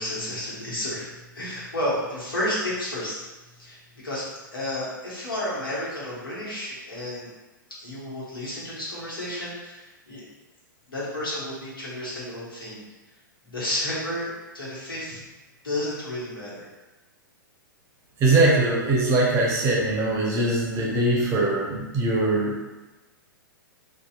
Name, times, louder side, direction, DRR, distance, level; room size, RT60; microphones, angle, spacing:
voice 1, 0.0-3.2 3.6-3.8 4.0-4.2 4.5-7.3 7.8-10.2 10.9-12.8 13.4-15.2 15.6-16.7, left 1 dB, 85° left, -7 dB, 1.2 m, -31 dB
voice 2, 18.2-22.7, right 2 dB, 25° right, -3 dB, 0.6 m, -22 dB
2.7 x 2.4 x 2.3 m, 1.1 s
hypercardioid pair, 110°, 11 cm